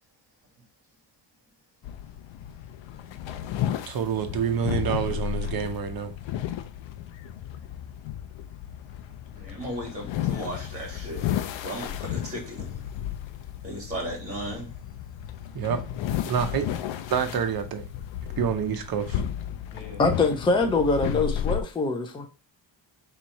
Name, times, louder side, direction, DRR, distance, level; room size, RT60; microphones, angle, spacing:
sound 1, 1.8-21.6, left 10 dB, 75° left, 0.6 m, -33 dB
voice 1, 3.9-6.1 15.5-15.8 16.3-16.7 17.1-17.9 18.4-19.2, right 7 dB, 50° right, 0.7 m, -27 dB
voice 2, 9.3-11.2 11.6-12.8 13.6-14.7 19.7-20.0, right 1 dB, 15° right, 1.8 m, -36 dB
voice 3, 20.0-22.3, left 3 dB, 10° left, 0.4 m, -24 dB
3.5 x 3.0 x 4.2 m
cardioid pair, 140°, 46 cm